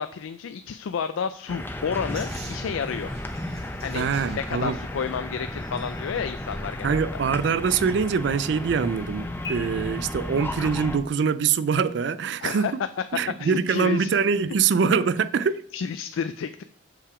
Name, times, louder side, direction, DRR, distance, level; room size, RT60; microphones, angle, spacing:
voice 1, 0.0-3.1 3.8-4.1 4.3-7.2 12.4-12.7 13.4-14.1 15.7-16.6, left 6 dB, 85° left, 0.4 m, -31 dB
sound 1, 1.5-11.0, left 1 dB, 10° left, 0.6 m, -34 dB
Vehicle, 2.1-6.0, right 1 dB, 30° right, 1.3 m, -43 dB
voice 2, 3.9-4.8 6.8-12.8 13.1-15.6, right 6 dB, 60° right, 0.3 m, -24 dB
sound 2, 9.4-10.9, left 2 dB, 60° left, 1.5 m, -43 dB
6.7 x 5.8 x 4.8 m
head